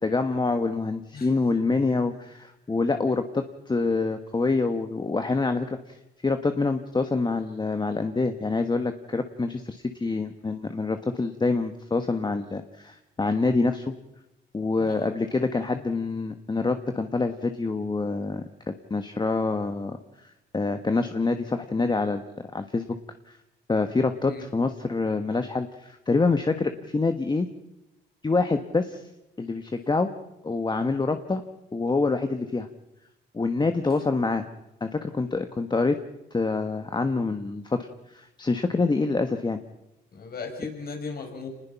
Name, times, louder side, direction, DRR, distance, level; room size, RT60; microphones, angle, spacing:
voice 1, 0.0-6.0 6.2-13.9 14.5-22.2 22.5-23.0 23.3-23.4 23.7-27.5 28.2-29.0 29.4-30.1 30.4-31.4 31.7-32.7 33.3-34.4 34.8-36.0 36.3-39.6, left 3 dB, 20° left, 7 dB, 1.3 m, -26 dB
voice 2, 14.8-15.1 15.7-15.8 24.2-24.4 40.1-41.5, left 4 dB, 50° left, 3 dB, 5.9 m, -37 dB
27.0 x 20.5 x 5.9 m, 0.93 s
cardioid pair, 90°, 20 cm